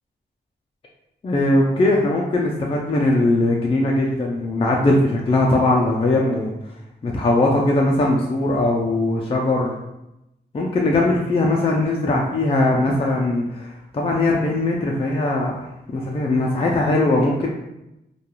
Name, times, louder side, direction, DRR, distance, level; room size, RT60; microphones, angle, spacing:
voice 1, 1.2-6.5 7.0-9.7 10.5-17.5, left 2 dB, 30° left, -1 dB, 0.4 m, -20 dB
2.3 x 2.2 x 2.9 m, 0.90 s
cardioid pair, 75°, 19 cm